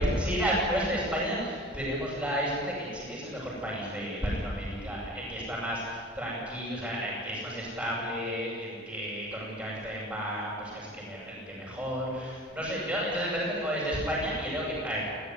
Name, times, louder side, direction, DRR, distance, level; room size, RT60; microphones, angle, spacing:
voice 1, 0.0-15.1, equal, 15° right, -10 dB, 7.9 m, -32 dB
22.5 x 17.0 x 10.0 m, 2.1 s
head